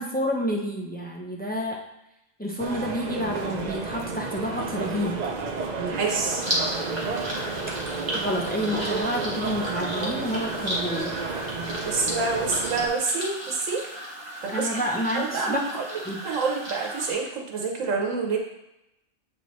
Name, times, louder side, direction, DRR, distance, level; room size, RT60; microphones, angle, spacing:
voice 1, 0.0-1.8 2.4-5.3 8.1-11.1 14.5-15.6 16.0-16.2, equal, 15° left, -1 dB, 0.4 m, -29 dB
sound 1, 2.6-12.9, right 4 dB, 45° right, 0.6 m, -31 dB
voice 2, 5.8-6.4 11.8-13.9 14.4-14.9 15.1-15.8 16.2-18.4, right 4 dB, 80° right, 1 dB, 1.3 m, -27 dB
sound 2, 6.4-17.1, equal, 20° right, 1.4 m, -34 dB
7.6 x 4.3 x 3.1 m, 0.88 s
omnidirectional pair, 1.3 m